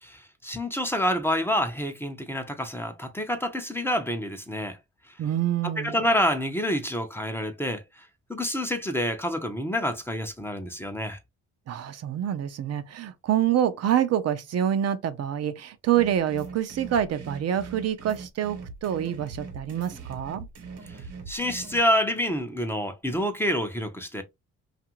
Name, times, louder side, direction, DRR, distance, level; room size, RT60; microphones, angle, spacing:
voice 1, 0.0-4.8 5.1-5.2 5.8-11.2 21.3-24.2, equal, 10° left, 0.6 m, -28 dB
voice 2, 5.2-6.0 11.7-20.5, right 10 dB, 55° right, 0.5 m, -26 dB
sound 1, 15.9-21.8, right 4 dB, 80° right, 1.1 m, -41 dB
2.6 x 2.4 x 2.9 m
cardioid pair, 90°, 30 cm